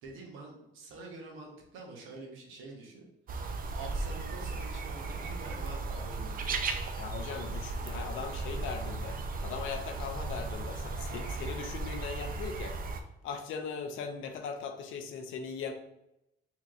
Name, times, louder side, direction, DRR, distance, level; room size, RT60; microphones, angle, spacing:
voice 1, 0.0-3.1 3.7-6.6, right 3 dB, 85° right, 0 dB, 1.0 m, -46 dB
sound 1, 3.3-13.0, right 3 dB, 45° right, 0.5 m, -36 dB
voice 2, 7.0-12.8 13.2-15.7, left 6 dB, 80° left, 5 dB, 0.5 m, -39 dB
4.3 x 2.9 x 2.4 m, 0.85 s
cardioid pair, 90°, 20 cm